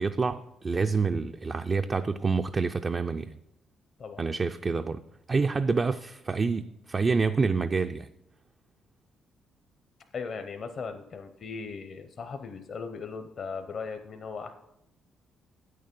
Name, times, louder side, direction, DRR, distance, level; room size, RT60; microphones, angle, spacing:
voice 1, 0.0-3.4 4.2-5.0 5.3-8.1, right 4 dB, 35° right, 8 dB, 0.3 m, -27 dB
voice 2, 10.1-14.5, left 5 dB, 50° left, 7 dB, 0.6 m, -38 dB
8.7 x 6.5 x 5.3 m, 0.84 s
cardioid pair, 90°, 0 cm